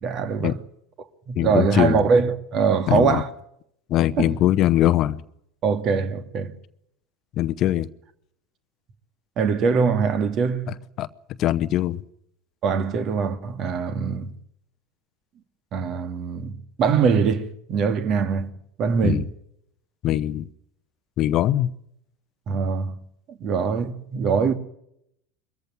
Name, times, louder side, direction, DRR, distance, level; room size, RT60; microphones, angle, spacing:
voice 1, 0.0-0.6 1.3-3.3 4.2-4.3 5.6-6.6 9.4-10.7 12.6-14.3 15.7-18.5 18.8-19.3 22.5-23.0 23.3-24.5, right 5 dB, 45° right, 2.1 m, -23 dB
voice 2, 1.4-2.0 2.9-3.2 3.9-5.2 7.4-7.9 11.0-11.1 11.4-12.0 19.0-19.2 20.0-20.5 21.2-21.7, left 13 dB, 45° left, 0.8 m, -21 dB
23.5 x 14.5 x 9.5 m
figure-of-eight pair, 80°, 0 cm